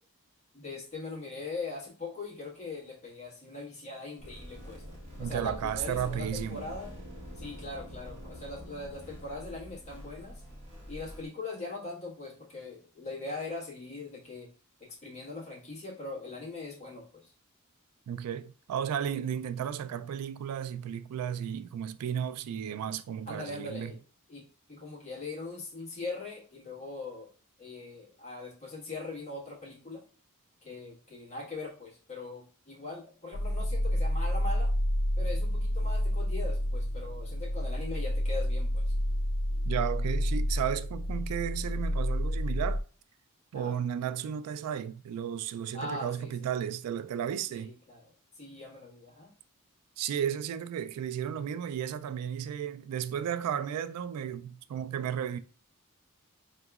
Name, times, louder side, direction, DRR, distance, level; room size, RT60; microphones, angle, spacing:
voice 1, 0.5-4.8 5.2-6.9 7.3-10.4 10.9-14.5 14.8-17.3 23.3-24.0 24.3-27.3 27.6-30.0 30.6-34.7 35.2-38.9 43.5-43.8 45.7-46.5 47.5-48.0 48.3-49.3, left 3 dB, 30° left, 1.5 m, -41 dB
sound 1, 4.2-11.2, equal, 30° right, 1.2 m, -45 dB
voice 2, 5.2-6.7 18.1-23.9 39.6-42.8 43.5-47.7 50.0-55.4, right 9 dB, 80° right, 0.3 m, -34 dB
sound 2, 33.3-42.8, equal, 90° left, 0.4 m, -29 dB
4.6 x 2.9 x 2.3 m
head